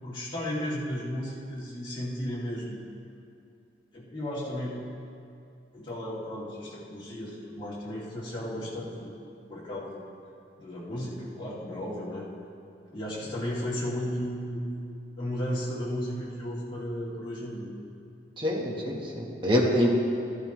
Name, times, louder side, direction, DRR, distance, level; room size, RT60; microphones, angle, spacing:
voice 1, 0.0-2.8 3.9-4.7 5.7-9.1 9.5-10.0 10.6-12.3 12.9-14.6 15.2-17.7, equal, 25° left, -8 dB, 2.4 m, -34 dB
voice 2, 18.4-19.9, equal, 25° right, -1 dB, 1.3 m, -25 dB
15.0 x 11.0 x 3.1 m, 2.6 s
head